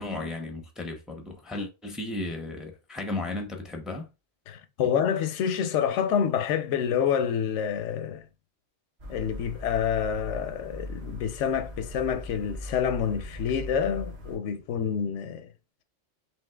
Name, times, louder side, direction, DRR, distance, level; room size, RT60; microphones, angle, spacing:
voice 1, 0.0-4.1 4.8-4.9, left 2 dB, ahead, 0.5 m, -35 dB
voice 2, 4.5-8.2 9.1-15.5, left 8 dB, 90° left, 0.9 m, -27 dB
sound 1, 9.0-14.4, left 1 dB, 60° right, 1.4 m, -40 dB
5.4 x 3.1 x 2.2 m
omnidirectional pair, 1.2 m